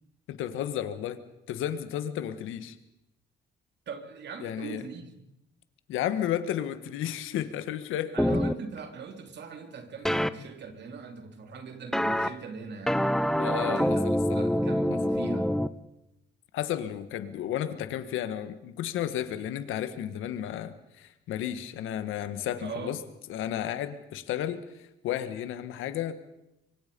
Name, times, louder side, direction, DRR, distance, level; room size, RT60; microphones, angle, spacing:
voice 1, 0.3-1.2 1.5-2.8 4.4-4.8 5.9-8.4 13.3-14.5 16.5-23.0 23.3-26.1, left 10 dB, 90° left, 11 dB, 1.7 m, -33 dB
voice 2, 3.9-5.1 8.1-13.1 13.5-14.1 14.3-15.5 22.6-23.0, right 5 dB, 60° right, 5 dB, 3.2 m, -40 dB
Raw monopoly chords loop, 8.2-8.5 10.0-10.3 11.9-12.3 12.9-15.7, equal, ahead, 0.9 m, -25 dB
25.0 x 24.5 x 5.4 m, 0.91 s
cardioid pair, 90°, 20 cm